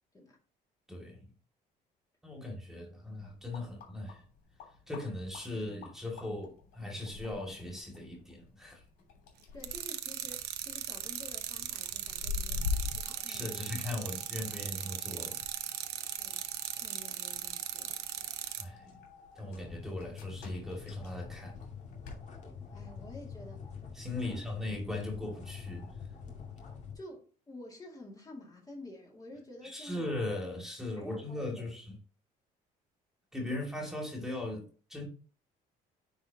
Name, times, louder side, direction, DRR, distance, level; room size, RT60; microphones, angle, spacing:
voice 1, 2.2-4.2 4.9-8.8 13.3-15.7 18.6-19.0 19.4-21.6 24.0-25.9 29.6-32.0 33.3-35.1, left 1 dB, 5° right, 2.4 m, -39 dB
sound 1, 3.1-22.2, left 5 dB, 75° left, 3.2 m, -45 dB
voice 2, 9.5-13.7 16.2-16.5 16.8-17.9 22.7-23.9 24.2-24.5 26.9-30.2 31.0-31.7, left 1 dB, 20° left, 2.2 m, -50 dB
sound 2, 9.6-18.6, right 12 dB, 80° right, 0.9 m, -38 dB
sound 3, 12.5-26.9, left 6 dB, 45° left, 2.2 m, -48 dB
9.8 x 4.2 x 2.9 m
cardioid pair, 110°, 17 cm